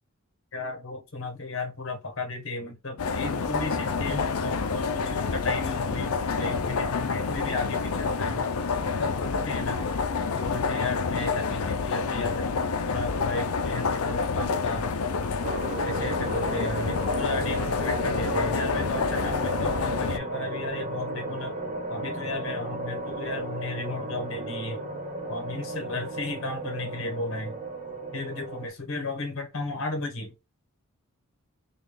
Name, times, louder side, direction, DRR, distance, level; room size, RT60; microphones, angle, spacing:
voice 1, 0.5-8.5 8.8-9.9 10.3-14.9 15.8-21.5 21.9-24.8 25.3-27.6 28.1-30.3, left 2 dB, 60° left, 1.2 m, -34 dB
sound 1, 3.0-20.2, left 4 dB, 80° left, 0.5 m, -28 dB
sound 2, 15.4-28.7, right 1 dB, 30° right, 1.1 m, -34 dB
4.0 x 2.4 x 3.3 m
head